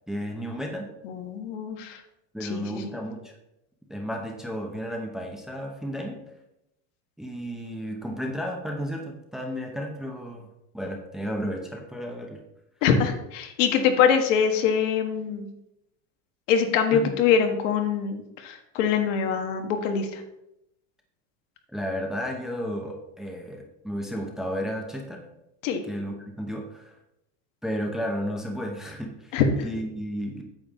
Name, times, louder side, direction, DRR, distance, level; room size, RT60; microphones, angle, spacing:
voice 1, 0.1-0.9 2.3-3.3 3.9-6.2 7.2-10.5 10.7-12.4 16.9-17.1 21.7-25.2 25.9-27.0 27.6-30.4, equal, ahead, 1 dB, 0.7 m, -33 dB
voice 2, 1.0-2.0 2.4-2.9 12.8-15.5 16.5-20.2 25.6-25.8 29.3-29.5, left 7 dB, 70° left, 5 dB, 1.5 m, -24 dB
8.9 x 7.1 x 3.6 m, 0.85 s
supercardioid pair, 160°, 38 cm